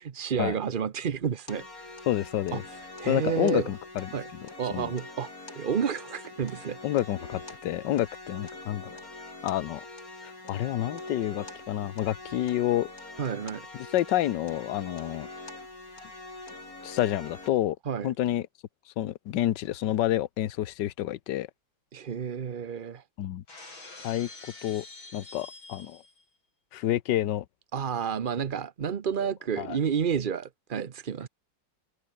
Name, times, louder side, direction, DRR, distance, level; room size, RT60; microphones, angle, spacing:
voice 1, 0.0-1.6 2.5-2.6 3.0-3.7 4.1-4.3 4.6-6.8 13.2-13.6 17.9-18.1 21.9-23.0 27.7-31.3, right 7 dB, 75° right, 0.4 m, -30 dB
sound 1, 1.5-17.5, left 2 dB, 45° left, 6.0 m, -44 dB
voice 2, 2.1-2.6 3.1-4.1 4.4-4.9 6.8-9.0 9.4-9.8 10.2-12.9 13.7-15.3 16.8-17.8 18.0-18.5 19.0-21.5 23.2-23.4 24.0-24.3 24.6-24.8 25.1-26.0 26.7-27.4 29.2-29.3 29.6-29.8, left 13 dB, 65° left, 1.4 m, -29 dB
Shatter, 23.5-26.2, left 3 dB, 80° left, 7.5 m, -46 dB
omnidirectional pair, 2.2 m